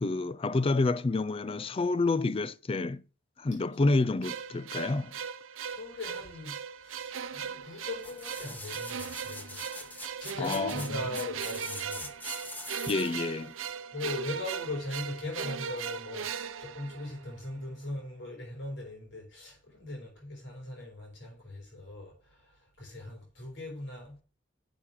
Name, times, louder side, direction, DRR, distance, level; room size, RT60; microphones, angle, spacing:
voice 1, 0.0-3.0 3.4-5.2 10.4-10.8 12.9-13.5, left 3 dB, 30° left, 0.4 m, -28 dB
sound 1, 4.2-17.5, right 7 dB, 90° right, 0.7 m, -38 dB
voice 2, 5.7-12.1 13.9-24.2, left 2 dB, 65° left, 5.3 m, -40 dB
sound 2, 8.0-13.2 13.7-13.8, left 2 dB, 10° left, 1.0 m, -43 dB
7.1 x 6.4 x 7.3 m
head